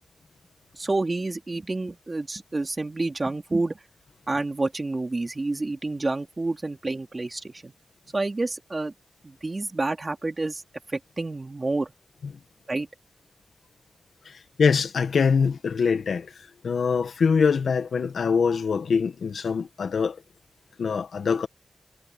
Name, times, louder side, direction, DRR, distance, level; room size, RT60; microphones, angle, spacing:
voice 1, 0.7-3.7 4.3-7.7 8.1-8.9 9.2-10.6 10.9-11.9 12.7-12.9, right 2 dB, 40° right, 3.9 m, -29 dB
voice 2, 14.2-16.3 16.6-20.2 20.8-21.5, left 5 dB, 90° left, 1.7 m, -23 dB
cardioid pair, 45°, 0 cm